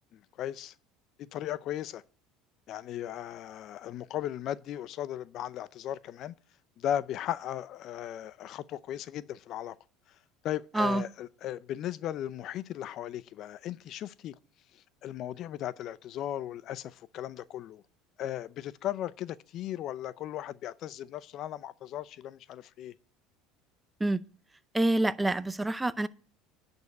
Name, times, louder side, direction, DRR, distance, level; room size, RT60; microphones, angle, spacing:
voice 1, 0.1-0.7 1.2-2.0 2.7-6.3 6.8-9.8 10.4-14.3 15.0-17.8 18.2-22.9, left 11 dB, 50° left, 0.5 m, -37 dB
voice 2, 24.7-26.1, right 2 dB, 10° right, 0.6 m, -27 dB
10.5 x 5.3 x 8.1 m
supercardioid pair, 115°, 0 cm